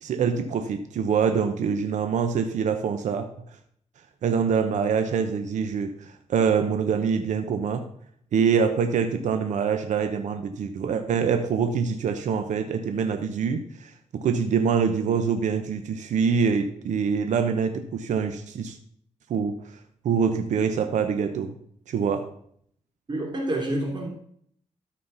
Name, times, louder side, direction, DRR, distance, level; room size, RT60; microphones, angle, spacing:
voice 1, 0.0-3.3 4.2-7.8 8.3-18.8 19.3-19.5 20.0-21.5 21.9-22.3, right 6 dB, 75° right, 7 dB, 0.9 m, -25 dB
voice 2, 23.1-24.1, right 1 dB, 35° right, 0 dB, 2.7 m, -28 dB
13.0 x 4.3 x 5.6 m, 0.64 s
cardioid pair, 100°, 12 cm